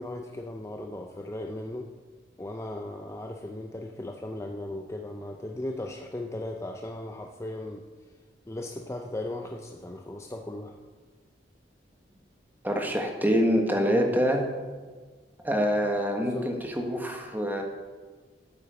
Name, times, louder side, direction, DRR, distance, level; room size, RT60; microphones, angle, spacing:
voice 1, 0.0-1.9 2.4-7.8 8.5-10.7 16.2-16.5, left 1 dB, 15° left, 3 dB, 0.5 m, -37 dB
voice 2, 12.6-14.4 15.4-17.6, equal, 10° right, 2 dB, 1.4 m, -25 dB
9.0 x 8.3 x 6.9 m, 1.4 s
head